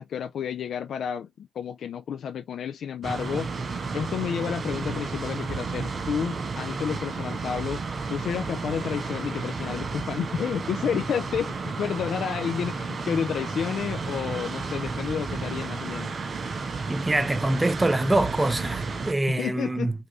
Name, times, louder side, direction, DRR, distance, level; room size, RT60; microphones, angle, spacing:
voice 1, 0.0-3.5 3.9-7.8 8.1-16.1 19.4-19.9, left 8 dB, 75° left, 0.4 m, -30 dB
sound 1, 3.0-19.1, right 4 dB, 55° right, 0.9 m, -32 dB
voice 2, 16.9-19.9, right 1 dB, 20° right, 0.8 m, -24 dB
5.4 x 2.6 x 3.1 m
supercardioid pair, 55°, 0 cm